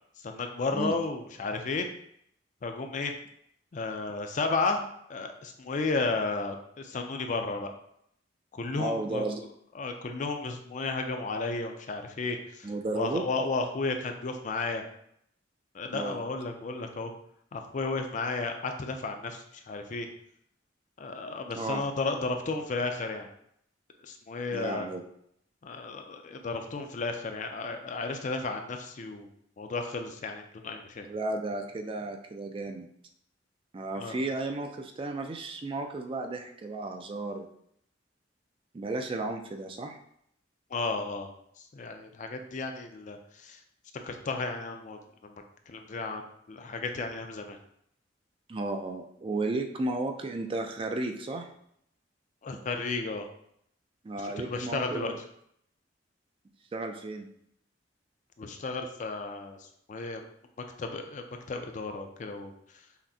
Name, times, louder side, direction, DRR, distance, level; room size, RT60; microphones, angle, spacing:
voice 1, 0.2-1.9 2.6-3.1 3.7-4.8 5.1-7.7 8.5-9.2 9.7-12.7 12.9-14.8 15.7-17.1 17.5-20.1 21.0-23.3 24.0-24.9 25.6-29.3 29.6-31.1 34.0-34.2 40.7-41.3 41.7-43.6 44.0-47.6 52.4-53.3 54.2-55.1 58.4-59.6 59.9-60.2 60.8-62.5, left 3 dB, 40° left, 5 dB, 0.4 m, -33 dB
voice 2, 8.8-9.4 12.6-13.2 15.9-16.2 21.3-21.9 24.5-25.0 31.0-32.9 33.7-37.5 38.7-40.0 48.5-51.5 54.0-55.2 56.7-57.3, right 2 dB, 30° right, 4 dB, 0.3 m, -33 dB
5.7 x 2.1 x 2.7 m, 0.70 s
head